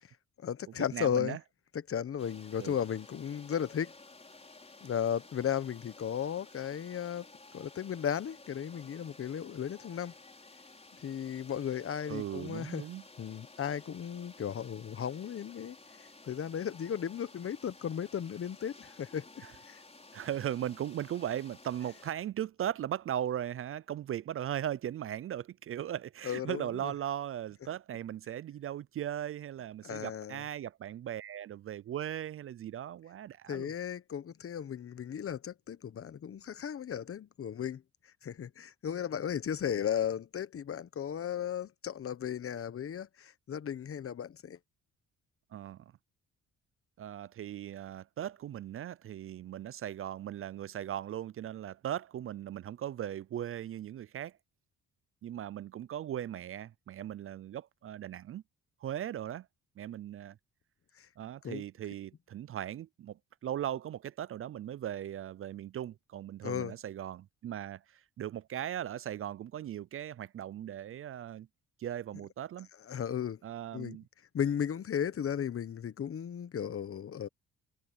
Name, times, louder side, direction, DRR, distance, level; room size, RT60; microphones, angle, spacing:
voice 1, 0.4-1.4 1.9-3.9 4.8-7.3 7.5-10.1 11.0-12.8 13.2-19.8 26.2-26.9 29.8-30.4 33.5-37.8 38.2-44.6 61.0-61.1 61.4-61.6 66.4-66.7 72.9-73.4 73.7-74.0 74.3-77.3, left 8 dB, 45° left, 1.1 m, -35 dB
voice 2, 0.9-1.4 2.6-2.8 12.1-13.0 20.1-33.7 45.5-45.9 47.0-54.4 55.2-58.4 58.8-59.5 59.8-60.4 61.2-71.5 71.8-72.7 73.4-74.1, right 11 dB, 45° right, 0.4 m, -38 dB
sound 1, 2.2-22.1, left 3 dB, 20° left, 5.1 m, -54 dB
cardioid pair, 90°, 30 cm